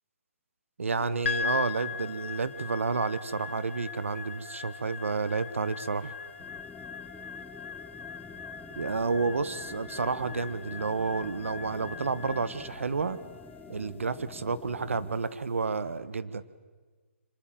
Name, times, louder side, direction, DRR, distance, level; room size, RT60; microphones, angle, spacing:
voice 1, 0.8-6.1 8.8-13.2 13.7-16.4, right 4 dB, 80° right, 15 dB, 1.4 m, -30 dB
sound 1, 1.0-13.9, left 8 dB, 30° left, 3.2 m, -53 dB
sound 2, 1.2-15.6, left 6 dB, 65° left, 1.7 m, -40 dB
sound 3, 6.4-15.2, left 4 dB, 5° left, 0.9 m, -48 dB
24.5 x 19.5 x 9.2 m, 1.4 s
hypercardioid pair, 150°, 7 cm